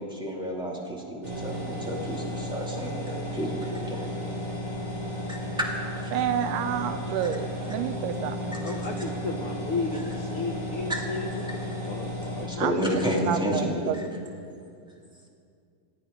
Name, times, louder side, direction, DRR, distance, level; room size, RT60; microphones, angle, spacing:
voice 1, 0.0-4.1 5.3-5.7 6.0-6.1 8.7-8.8 10.9-11.0 12.4-13.9, equal, ahead, -3 dB, 1.6 m, -30 dB
sound 1, 1.2-12.5, equal, 20° right, 3.9 m, -34 dB
voice 2, 6.1-8.7 12.6-12.8 13.3-14.0, right 9 dB, 80° right, 10 dB, 2.0 m, -29 dB
voice 3, 8.6-13.0, left 4 dB, 85° left, 1 dB, 1.2 m, -34 dB
28.0 x 9.4 x 5.2 m, 2.4 s
omnidirectional pair, 3.9 m